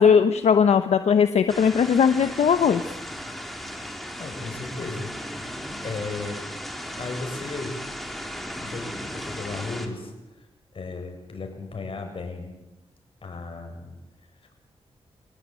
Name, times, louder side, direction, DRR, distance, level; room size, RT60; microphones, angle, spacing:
voice 1, 0.0-2.8, left 7 dB, 80° left, 9 dB, 1.1 m, -19 dB
sound 1, 1.5-9.9, equal, ahead, 3.9 m, -36 dB
voice 2, 4.2-5.1 5.8-6.4 7.0-7.8 8.6-10.1 10.7-12.5 13.2-13.9, left 3 dB, 55° left, 4 dB, 6.9 m, -35 dB
25.5 x 18.0 x 9.1 m, 0.96 s
cardioid pair, 80°, 11 cm